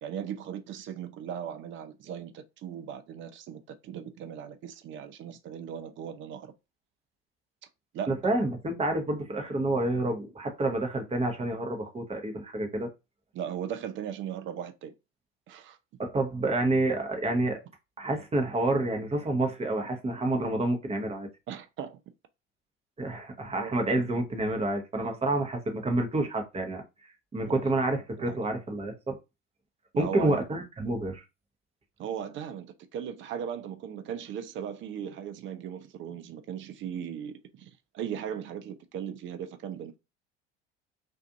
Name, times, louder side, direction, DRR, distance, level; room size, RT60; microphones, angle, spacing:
voice 1, 0.0-6.5 7.9-8.2 13.3-14.9 15.5-15.8 21.5-22.0 23.6-23.8 27.4-27.7 28.2-28.5 29.9-30.5 32.0-40.0, right 8 dB, 40° right, 0.5 m, -38 dB
voice 2, 8.1-12.9 16.0-17.6 18.0-21.3 23.0-26.8 27.3-29.2 29.9-31.2, right 2 dB, 20° right, 0.9 m, -28 dB
2.5 x 2.4 x 2.4 m
hypercardioid pair, 65°, 30 cm